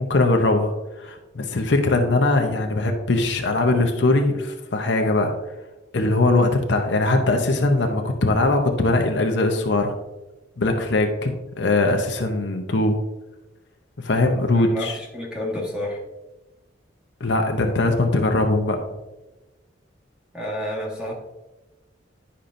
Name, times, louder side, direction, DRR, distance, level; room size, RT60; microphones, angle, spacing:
voice 1, 0.0-5.3 5.9-9.9 10.6-13.0 14.0-15.0 17.2-18.8, left 2 dB, 65° left, 4 dB, 0.7 m, -21 dB
voice 2, 14.5-16.0 20.3-21.1, left 1 dB, 5° right, -4 dB, 1.6 m, -30 dB
10.0 x 5.5 x 2.6 m, 1.1 s
head